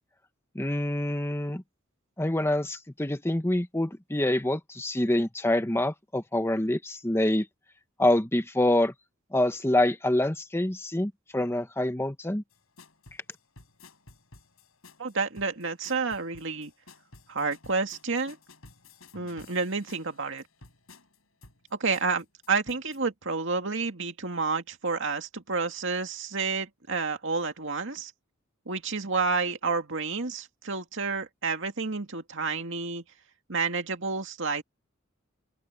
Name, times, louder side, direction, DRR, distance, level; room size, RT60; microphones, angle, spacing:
voice 1, 0.5-1.6 2.2-7.5 8.0-8.9 9.3-12.4, left 1 dB, 10° left, 1.0 m, -26 dB
sound 1, 12.5-23.0, left 3 dB, 75° left, 6.8 m, -54 dB
voice 2, 15.0-16.7 17.3-18.4 19.1-20.4 21.7-28.1 28.7-33.0 33.5-34.6, right 4 dB, 65° right, 2.3 m, -30 dB
open air
head